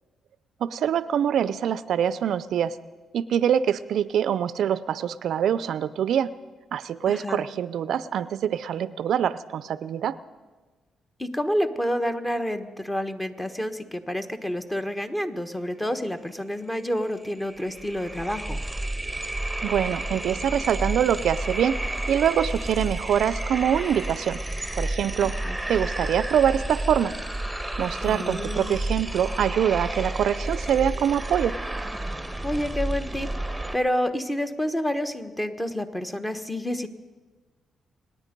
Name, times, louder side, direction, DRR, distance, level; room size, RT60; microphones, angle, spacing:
voice 1, 0.6-2.8 3.1-6.3 6.7-10.2 19.6-21.8 22.1-24.4 24.8-25.4 25.7-27.1 27.8-31.6, right 9 dB, 75° right, 16 dB, 0.4 m, -24 dB
voice 2, 7.1-7.4 11.2-18.6 25.2-25.6 28.0-28.8 32.4-33.3 33.7-36.9, equal, 15° left, 9 dB, 1.2 m, -29 dB
sound 1, 16.8-16.9 17.1-33.8, right 1 dB, 5° right, 1.1 m, -31 dB
26.0 x 9.6 x 5.3 m, 1.3 s
cardioid pair, 80°, 0 cm